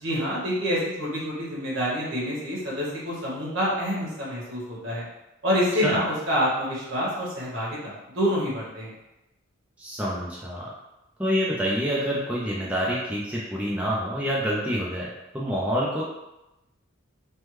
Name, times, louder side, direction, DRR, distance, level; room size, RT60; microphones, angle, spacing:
voice 1, 0.0-5.0 5.4-8.9, equal, 65° right, -6 dB, 1.1 m, -27 dB
voice 2, 9.8-10.7 11.2-16.0, equal, 5° right, -6 dB, 0.4 m, -27 dB
3.4 x 2.2 x 3.0 m, 0.95 s
head